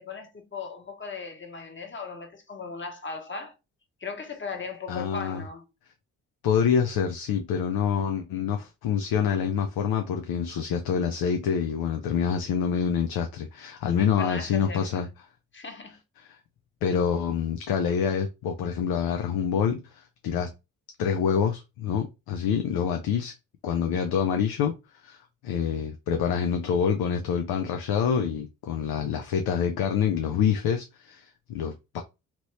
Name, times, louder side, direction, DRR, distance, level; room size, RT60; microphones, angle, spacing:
voice 1, 0.0-3.5 4.0-5.7 14.1-15.1 15.5-16.0, left 4 dB, 30° left, 1.2 m, -38 dB
voice 2, 4.9-5.4 6.4-15.1 16.2-16.4 16.8-20.5 21.0-23.3 23.6-24.8 25.0-32.0, left 7 dB, 75° left, 0.6 m, -26 dB
3.0 x 2.8 x 3.1 m
supercardioid pair, 55°, 37 cm